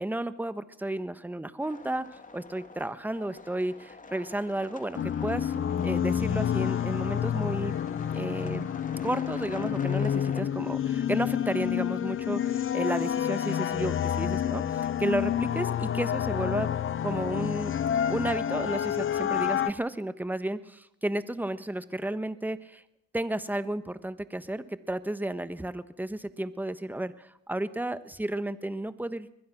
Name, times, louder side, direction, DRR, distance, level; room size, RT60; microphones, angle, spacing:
voice 1, 0.0-2.1 2.3-5.5 5.8-7.7 8.1-8.7 9.0-16.7 17.0-17.7 18.1-22.8 23.1-29.3, right 1 dB, 5° right, 13 dB, 1.3 m, -32 dB
sound 1, 1.6-10.4, left 3 dB, 25° left, 2.8 m, -46 dB
sound 2, 5.0-19.7, left 9 dB, 45° left, 0.9 m, -29 dB
23.0 x 20.5 x 6.1 m, 0.83 s
cardioid pair, 90°, 30 cm